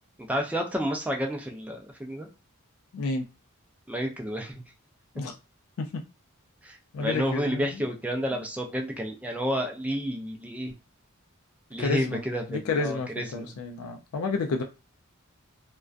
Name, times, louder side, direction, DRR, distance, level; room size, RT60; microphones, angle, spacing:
voice 1, 0.3-2.3 3.9-4.6 6.6-10.7 11.7-13.6, equal, 5° right, 0.3 m, -30 dB
voice 2, 2.9-3.3 5.1-5.3 5.8-6.0 6.9-7.8 11.8-12.2 12.5-14.6, left 4 dB, 80° left, 0.4 m, -30 dB
2.4 x 2.1 x 2.4 m
head